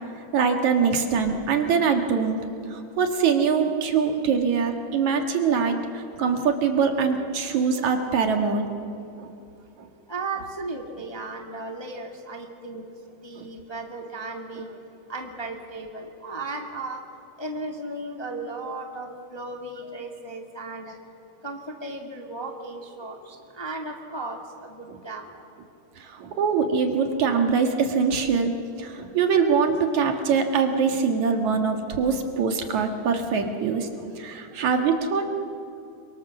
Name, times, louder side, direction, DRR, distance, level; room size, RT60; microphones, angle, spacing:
voice 1, 0.3-2.4 2.7-8.7 9.2-9.3 9.8-9.9 13.4-13.5 24.9-25.0 26.0-28.5 28.8-35.3, right 5 dB, 65° right, 5 dB, 3.0 m, -23 dB
voice 2, 10.1-12.8 13.2-14.8 15.1-17.0 17.4-20.9 21.4-25.4, right 2 dB, 10° left, 2 dB, 1.4 m, -35 dB
28.5 x 24.0 x 7.2 m, 2.7 s
omnidirectional pair, 3.7 m